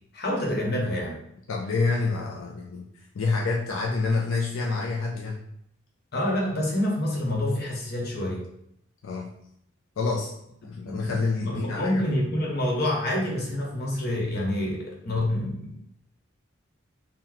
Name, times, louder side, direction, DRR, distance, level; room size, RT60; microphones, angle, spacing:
voice 1, 0.1-1.2 6.1-8.4 10.8-15.8, left 1 dB, 55° left, -2 dB, 0.9 m, -27 dB
voice 2, 1.5-2.9 3.1-5.4 9.0-9.3 10.0-10.3 10.6-12.2, left 3 dB, 85° left, -2 dB, 0.4 m, -27 dB
2.9 x 2.2 x 3.8 m, 0.74 s
head